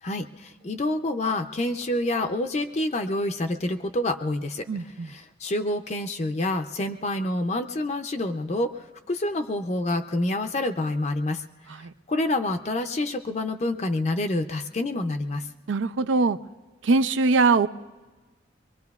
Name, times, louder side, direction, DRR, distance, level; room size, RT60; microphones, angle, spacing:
voice 1, 0.0-11.4 11.7-15.5, left 1 dB, 35° left, 6 dB, 0.5 m, -28 dB
voice 2, 4.7-5.1 11.8-11.9 15.7-16.4 16.8-17.7, right 3 dB, 85° right, 13 dB, 0.5 m, -21 dB
23.0 x 23.0 x 2.4 m, 1.3 s
head